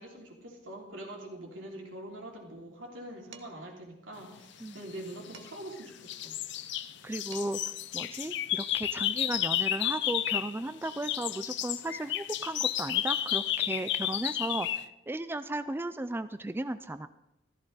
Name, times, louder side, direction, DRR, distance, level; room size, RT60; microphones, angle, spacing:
voice 1, 0.0-6.4, right 1 dB, 85° right, 0 dB, 3.3 m, -44 dB
Dishes pots and pans, 3.3-3.8 5.3-5.8 7.0-7.1 7.3-7.8, right 6 dB, 70° right, 1.2 m, -52 dB
sound 1, 4.9-5.7 6.1-10.6 10.8-14.8, left 12 dB, 65° left, 0.5 m, -32 dB
voice 2, 7.0-7.6 7.9-14.7 15.1-17.1, right 2 dB, 10° right, 11 dB, 0.4 m, -35 dB
14.5 x 14.0 x 4.0 m, 0.90 s
head